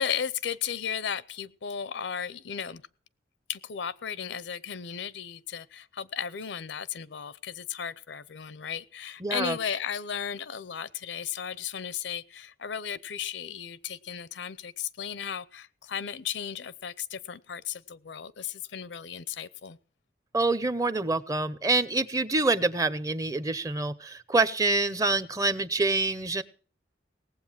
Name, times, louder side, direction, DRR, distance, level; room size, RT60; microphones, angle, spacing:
voice 1, 0.0-2.8 3.5-19.8, left 8 dB, 75° left, 18 dB, 0.6 m, -35 dB
voice 2, 9.2-9.6 20.3-26.4, right 3 dB, 20° right, 15 dB, 0.7 m, -26 dB
18.5 x 7.9 x 7.3 m, 0.41 s
head